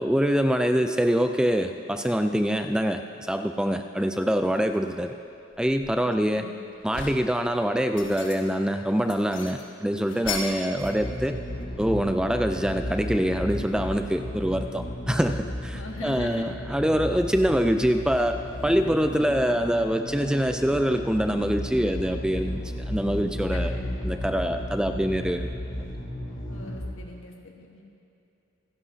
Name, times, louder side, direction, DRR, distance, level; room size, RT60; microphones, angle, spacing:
voice 1, 0.0-5.1 5.6-6.5 6.8-11.4 11.8-25.5, equal, 5° right, 7 dB, 0.3 m, -25 dB
sound 1, 4.6-4.8 5.3-6.3 6.7-7.3 7.8-8.6 9.0-11.0 11.3-12.3, left 4 dB, 65° left, 1.5 m, -37 dB
voice 2, 6.0-6.6 15.7-16.6 23.5-23.8 24.3-24.4 26.5-27.8, left 2 dB, 80° left, 1 dB, 1.5 m, -42 dB
sound 2, 10.8-26.9, left 1 dB, 45° left, 1.2 m, -34 dB
27.0 x 11.5 x 2.8 m, 2.7 s
head